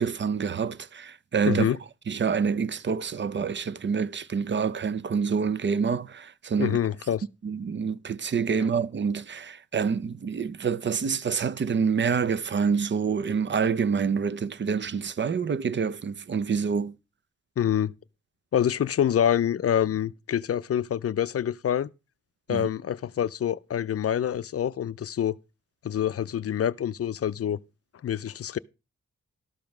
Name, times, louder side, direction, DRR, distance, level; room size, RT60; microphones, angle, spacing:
voice 1, 0.0-1.7 2.1-6.8 7.4-16.9 22.5-22.7, right 6 dB, 40° right, 0.5 m, -27 dB
voice 2, 1.5-1.8 6.6-7.2 17.6-17.9 18.5-21.9 22.5-25.4 25.8-27.6 28.0-28.6, left 9 dB, 55° left, 0.5 m, -26 dB
13.0 x 5.1 x 6.0 m
wide cardioid pair, 110°, 29 cm